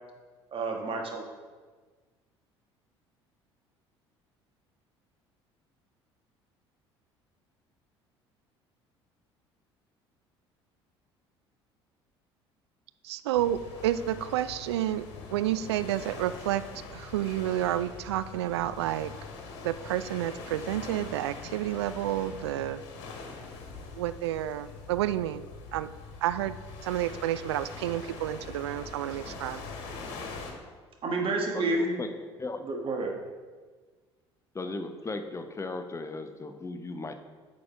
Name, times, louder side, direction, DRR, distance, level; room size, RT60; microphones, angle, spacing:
voice 1, 0.5-1.2 31.0-32.0 32.6-33.2, right 2 dB, 40° right, 2 dB, 1.5 m, -29 dB
voice 2, 13.0-16.6 16.9-19.1 19.6-22.8 24.0-25.4 25.7-25.9 26.2-26.6 26.8-29.6, right 12 dB, 75° right, 13 dB, 0.4 m, -30 dB
sound 1, 13.3-30.5, left 4 dB, 65° left, 1.5 m, -43 dB
voice 3, 31.5-32.6 34.5-37.1, left 3 dB, 20° left, 8 dB, 0.8 m, -37 dB
8.6 x 5.3 x 4.7 m, 1.4 s
figure-of-eight pair, 60°, 14 cm